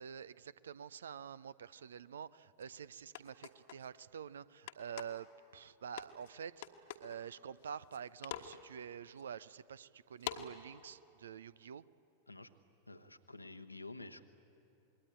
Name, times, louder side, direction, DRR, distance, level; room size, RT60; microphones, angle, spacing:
voice 1, 0.0-5.3 5.5-11.9, right 8 dB, 65° right, 19 dB, 0.5 m, -48 dB
sound 1, 2.6-2.7 3.1-3.9 4.7-5.2 6.0-6.3 6.6-7.2 7.6-8.0 8.2-8.6 9.2-9.3 10.2-10.5, left 12 dB, 55° left, 1.3 m, -44 dB
voice 2, 12.9-14.2, left 2 dB, 85° left, 7 dB, 1.2 m, -50 dB
27.0 x 21.0 x 9.9 m, 2.8 s
figure-of-eight pair, 90°, 0 cm